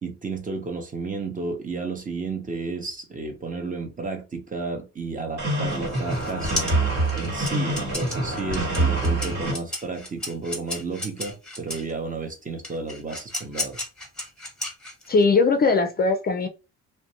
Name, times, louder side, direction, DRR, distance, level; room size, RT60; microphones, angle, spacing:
voice 1, 0.0-6.7 7.1-13.8, right 4 dB, 25° right, 0.7 m, -32 dB
sound 1, 5.4-9.5, right 2 dB, 60° right, 1.3 m, -25 dB
sound 2, 5.7-11.9 12.6-15.2, left 2 dB, 5° left, 1.1 m, -34 dB
voice 2, 15.1-16.5, left 4 dB, 30° left, 0.4 m, -20 dB
2.5 x 2.1 x 2.7 m
cardioid pair, 90°, 30 cm